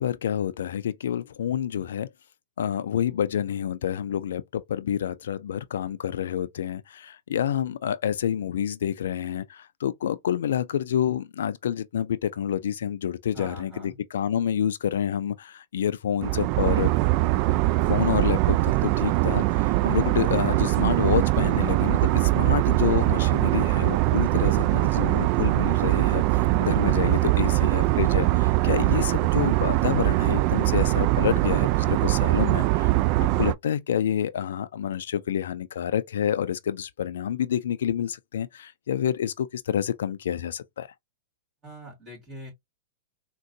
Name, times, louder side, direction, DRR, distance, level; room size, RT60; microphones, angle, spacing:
voice 1, 0.0-2.1 2.6-16.9 17.9-26.2 26.6-32.9 33.2-40.9, left 9 dB, 75° left, 0.4 m, -28 dB
voice 2, 13.3-14.0 24.4-25.0 41.6-42.5, right 1 dB, 25° right, 2.1 m, -43 dB
sound 1, 16.2-33.5, right 19 dB, 45° right, 0.3 m, -22 dB
3.7 x 2.2 x 2.6 m
hypercardioid pair, 120°, 0 cm